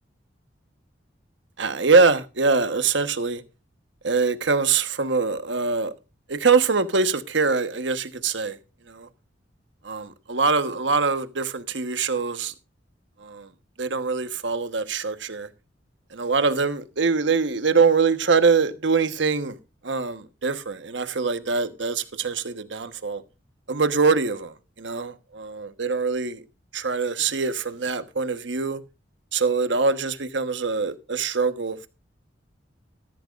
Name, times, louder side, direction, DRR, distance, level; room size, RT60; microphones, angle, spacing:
voice 1, 1.6-3.4 4.0-5.9 6.3-8.6 8.9-9.1 9.8-12.5 13.2-13.5 13.8-15.5 16.1-19.6 19.8-23.2 23.7-26.4 26.7-28.8 29.3-31.9, right 4 dB, 75° right, 1.2 m, -23 dB
14.5 x 13.5 x 2.5 m
head